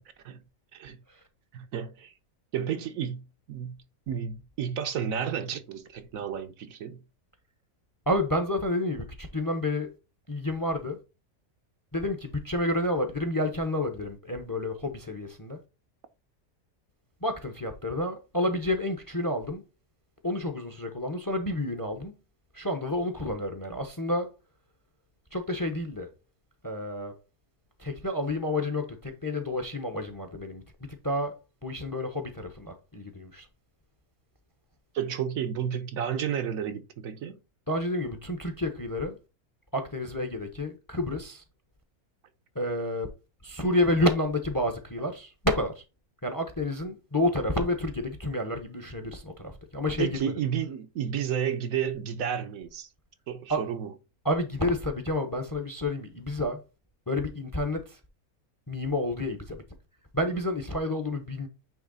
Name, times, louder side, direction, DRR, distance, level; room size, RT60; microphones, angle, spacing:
voice 1, 1.5-2.1 2.5-3.8 4.1-7.0 34.9-37.4 50.0-52.9 53.3-53.9, right 8 dB, 70° right, 1.1 m, -31 dB
voice 2, 8.1-9.9 10.3-11.0 11.9-15.6 17.2-19.6 20.2-22.1 22.5-24.3 25.3-26.1 26.6-27.2 27.8-33.5 37.7-39.2 39.7-41.4 42.5-43.1 43.4-45.8 46.2-50.3 53.5-53.7 54.2-56.7 57.1-58.0 58.7-59.6 60.1-61.5, left 1 dB, 20° left, 0.7 m, -30 dB
8.9 x 3.2 x 3.9 m
omnidirectional pair, 1.5 m